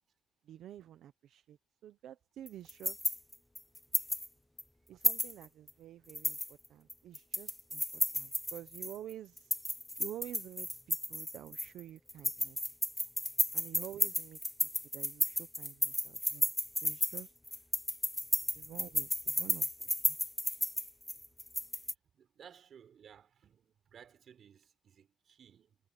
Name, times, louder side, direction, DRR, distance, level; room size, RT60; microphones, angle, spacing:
voice 1, 0.5-1.6 1.8-3.0 4.9-7.8 8.1-9.5 10.0-12.6 13.5-14.4 14.9-16.5 16.8-17.3 18.5-19.7 20.0-20.2, right 11 dB, 75° right, 0.9 m, -49 dB
sound 1, 2.5-4.3 4.6-4.7 5.0-5.7 6.1-9.0 9.4-11.8 12.1-21.9, left 1 dB, 10° left, 0.8 m, -33 dB
voice 2, 22.1-25.8, right 8 dB, 60° right, 5.7 m, -58 dB
cardioid pair, 90°, 0 cm